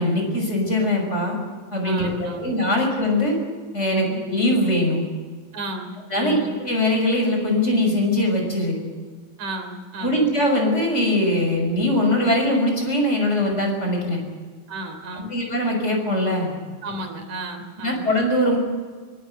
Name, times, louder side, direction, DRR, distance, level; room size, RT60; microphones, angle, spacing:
voice 1, 0.0-1.4 1.7-3.4 3.7-5.0 6.1-8.8 10.0-14.2 15.1-16.5 17.8-18.6, left 1 dB, 20° left, 2 dB, 6.1 m, -21 dB
voice 2, 1.8-2.5 3.9-4.2 5.5-6.5 9.4-10.2 14.7-15.4 16.8-18.1, right 1 dB, 60° right, 4 dB, 4.6 m, -33 dB
24.0 x 19.5 x 8.1 m, 1.4 s
omnidirectional pair, 3.9 m